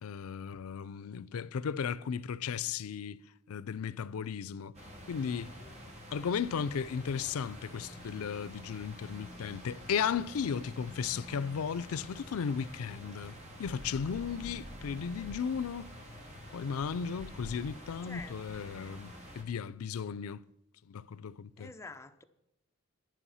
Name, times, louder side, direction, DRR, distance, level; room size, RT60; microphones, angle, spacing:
voice 1, 0.0-3.2 3.5-4.7 5.1-5.5 6.1-15.9 16.5-20.4 20.9-21.7, left 7 dB, 85° left, 0.4 m, -35 dB
sound 1, 4.7-19.4, equal, 30° right, 2.0 m, -48 dB
voice 2, 18.1-18.4 21.6-22.2, left 3 dB, 15° left, 0.5 m, -47 dB
10.5 x 9.9 x 5.6 m
head